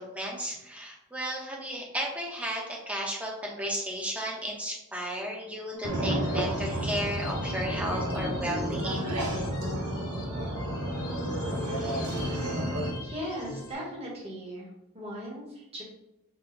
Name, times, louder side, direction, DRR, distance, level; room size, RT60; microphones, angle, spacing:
voice 1, 0.0-9.1, equal, 5° right, -2 dB, 0.8 m, -34 dB
sound 1, 5.7-13.7, left 3 dB, 80° left, 0.8 m, -43 dB
sound 2, 5.8-12.9, right 1 dB, 80° right, 0.9 m, -31 dB
voice 2, 13.0-15.8, equal, 25° right, -3 dB, 1.1 m, -38 dB
5.9 x 2.2 x 3.8 m, 0.96 s
head